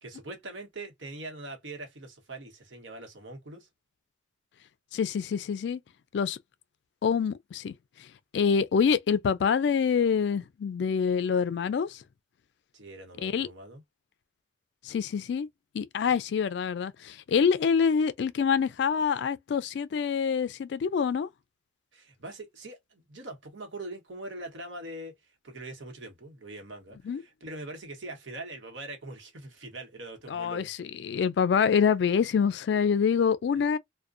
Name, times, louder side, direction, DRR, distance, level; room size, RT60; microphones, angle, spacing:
voice 1, 0.0-3.7 12.7-13.8 21.9-30.7, right 2 dB, 80° right, 0.9 m, -42 dB
voice 2, 4.9-5.8 6.1-6.4 7.0-7.7 8.0-8.1 8.3-12.0 13.2-13.5 14.8-15.5 15.7-21.3 27.0-27.2 30.3-33.8, left 6 dB, 65° left, 0.3 m, -26 dB
2.4 x 2.1 x 2.4 m
head